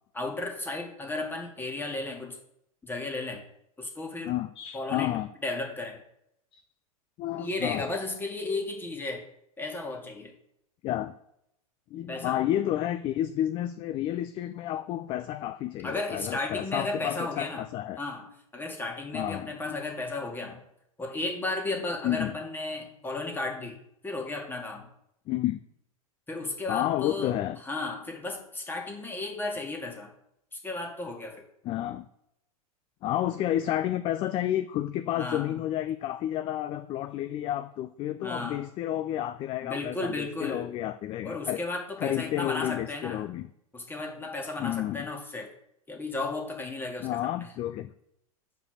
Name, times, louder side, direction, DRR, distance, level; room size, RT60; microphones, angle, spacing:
voice 1, 0.1-2.4 2.8-3.4 3.8-4.3 4.7-5.2 5.4-6.0 7.4-9.2 9.6-10.3 12.1-12.4 15.8-17.6 18.0-18.2 18.5-20.6 21.0-24.9 26.3-27.3 27.6-30.1 30.5-31.3 35.2-35.6 38.2-38.6 39.6-40.7 41.2-43.3 43.7-45.5 45.9-47.5, left 2 dB, 10° left, 1 dB, 2.0 m, -34 dB
voice 2, 4.2-5.3 6.5-6.6 7.2-7.9 10.8-11.1 11.9-18.0 19.1-19.8 22.0-22.3 25.3-25.6 26.7-27.6 31.6-32.1 33.0-41.6 42.0-43.5 44.6-45.1 47.0-47.9, left 12 dB, 30° left, 11 dB, 0.4 m, -31 dB
6.7 x 5.0 x 6.5 m, 0.77 s
figure-of-eight pair, 95°, 19 cm